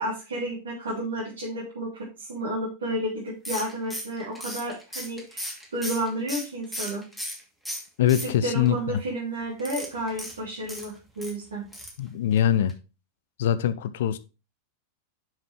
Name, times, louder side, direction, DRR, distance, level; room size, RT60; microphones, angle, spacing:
voice 1, 0.0-7.0 8.2-11.6, right 1 dB, 70° right, 3.4 m, -31 dB
sound 1, 3.5-7.4 7.7-8.7 9.6-11.3 11.7-12.0 12.3-12.4 12.7-12.8, equal, 5° right, 2.6 m, -36 dB
voice 2, 8.0-8.8 12.0-12.7 13.4-14.2, left 10 dB, 55° left, 0.6 m, -23 dB
7.4 x 6.4 x 3.6 m
figure-of-eight pair, 90°, 0 cm